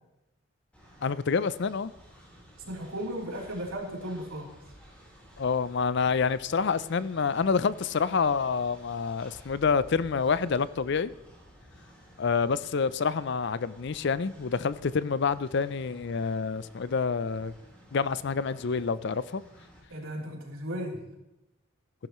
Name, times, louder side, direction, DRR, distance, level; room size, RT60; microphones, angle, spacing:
Train, 0.7-19.8, equal, 5° left, 4.0 m, -53 dB
voice 1, 1.0-1.9 5.4-11.1 12.2-17.5 17.9-19.4, left 5 dB, 55° left, 0.5 m, -27 dB
voice 2, 2.6-4.5 19.9-21.0, equal, 85° right, 3.5 m, -35 dB
15.5 x 12.0 x 3.1 m
head